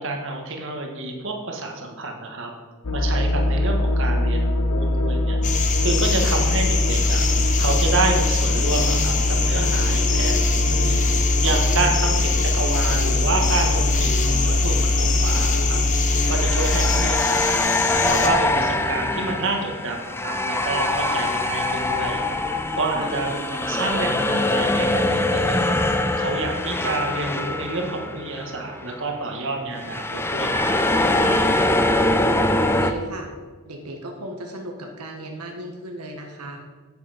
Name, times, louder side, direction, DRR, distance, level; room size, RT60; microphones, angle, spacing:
voice 1, 0.0-2.5 2.9-5.4 5.8-7.2 7.6-11.0 11.4-15.8 16.3-17.7 18.0-22.2 22.8-25.0 25.3-25.8 26.2-30.8, right 3 dB, 60° right, 2 dB, 1.5 m, -28 dB
sound 1, 2.8-17.1, left 1 dB, 80° left, 0.8 m, -21 dB
sound 2, 5.4-18.3, left 6 dB, 35° left, 1.0 m, -26 dB
sound 3, 13.5-13.8 16.2-28.6 28.8-29.1 29.8-32.9, left 2 dB, 10° left, 0.5 m, -23 dB
voice 2, 32.5-33.3 33.6-36.6, right 1 dB, 90° right, 2 dB, 1.3 m, -36 dB
9.6 x 8.6 x 5.0 m, 1.4 s
head